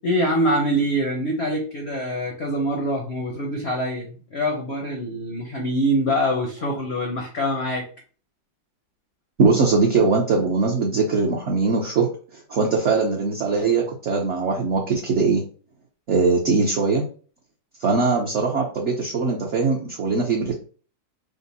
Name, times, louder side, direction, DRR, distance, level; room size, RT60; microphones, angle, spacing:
voice 1, 0.0-7.8 17.9-18.1, equal, 55° left, 1 dB, 0.7 m, -24 dB
voice 2, 9.4-12.1 12.3-15.4 16.1-17.0 17.8-20.5, right 4 dB, 55° right, -2 dB, 0.8 m, -21 dB
5.1 x 2.1 x 4.0 m, 0.39 s
omnidirectional pair, 2.1 m